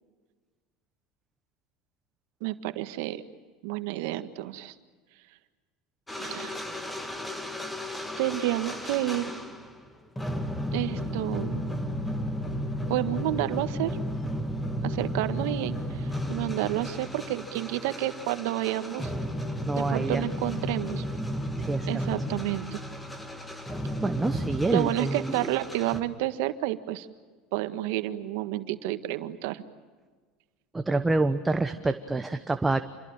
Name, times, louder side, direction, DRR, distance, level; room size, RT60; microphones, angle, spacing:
voice 1, 2.4-3.2 3.6-4.7 6.2-6.6 8.2-9.3 10.7-11.7 12.9-14.0 14.8-19.1 19.8-21.0 21.9-22.8 24.7-27.1 27.5-29.6, right 15 dB, 70° right, 10 dB, 1.7 m, -30 dB
sound 1, 6.1-9.8 10.2-26.0, equal, 5° left, 2.3 m, -33 dB
voice 2, 19.7-20.2 21.7-21.9 24.0-25.5 30.7-32.8, right 2 dB, 10° right, 8 dB, 1.1 m, -27 dB
28.0 x 22.0 x 8.9 m, 1.4 s
supercardioid pair, 135°, 0 cm